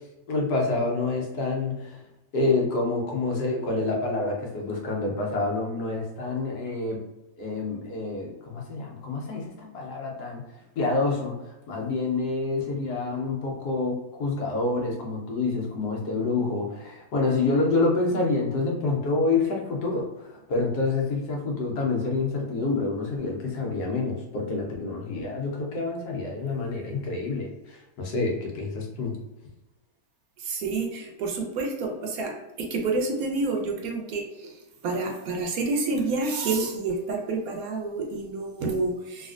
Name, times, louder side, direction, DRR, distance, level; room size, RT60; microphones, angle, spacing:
voice 1, 0.3-2.0 2.3-7.0 7.4-10.4 10.8-29.1, left 3 dB, 75° left, -1 dB, 1.3 m, -27 dB
voice 2, 30.4-39.3, right 3 dB, 70° right, 2 dB, 1.0 m, -29 dB
3.3 x 2.5 x 2.4 m, 1.0 s
omnidirectional pair, 1.7 m